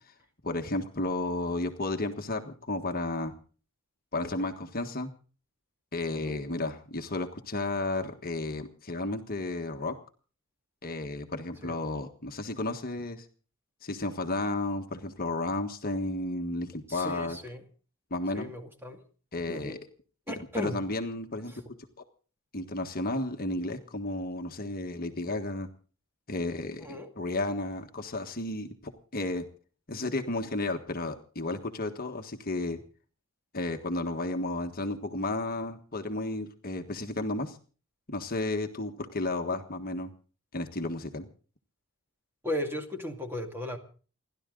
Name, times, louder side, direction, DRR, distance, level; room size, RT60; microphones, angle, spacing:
voice 1, 0.4-3.3 4.1-5.1 5.9-10.0 10.8-13.3 13.8-17.4 18.1-18.5 19.3-19.8 20.6-21.5 22.5-25.7 26.3-29.5 29.9-32.8 33.5-37.6 38.1-40.1 40.5-41.3, left 2 dB, 40° left, 5 dB, 1.5 m, -33 dB
voice 2, 6.1-6.4 11.6-11.8 16.9-17.6 18.3-19.0 19.5-19.8 20.3-20.8 21.5-21.6 26.8-27.1 42.4-43.8, left 1 dB, 10° right, 4 dB, 2.2 m, -36 dB
29.0 x 12.0 x 3.9 m, 0.39 s
head